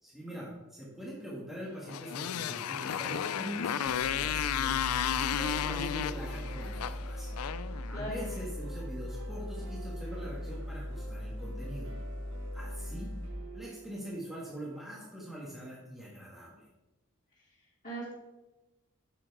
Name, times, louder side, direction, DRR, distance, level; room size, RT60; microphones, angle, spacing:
voice 1, 0.0-7.3 7.9-11.9 12.5-13.1 13.5-16.7, equal, ahead, -6 dB, 1.5 m, -43 dB
Motorcycle, 1.9-8.4, left 9 dB, 80° left, 0.4 m, -33 dB
sound 1, 3.9-13.3, left 1 dB, 60° left, 1.4 m, -39 dB
sound 2, 4.6-14.5, right 2 dB, 65° right, 1.7 m, -51 dB
voice 2, 7.9-8.3 17.3-18.1, right 1 dB, 35° left, -9 dB, 2.6 m, -41 dB
7.2 x 5.9 x 4.6 m, 1.0 s
head